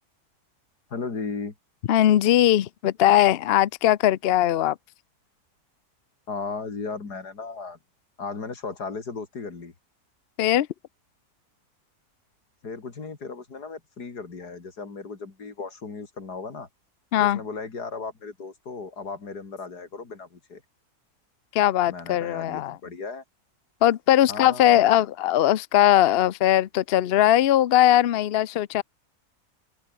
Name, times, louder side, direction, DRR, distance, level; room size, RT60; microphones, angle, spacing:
voice 1, 0.9-1.5 6.3-7.8 8.2-9.7 12.6-16.7 17.2-20.6 21.9-23.2 24.3-25.1, left 4 dB, 80° left, 3.6 m, -36 dB
voice 2, 1.9-4.8 10.4-10.7 17.1-17.4 21.5-22.8 23.8-28.8, left 12 dB, 60° left, 0.6 m, -20 dB
omnidirectional pair, 1.7 m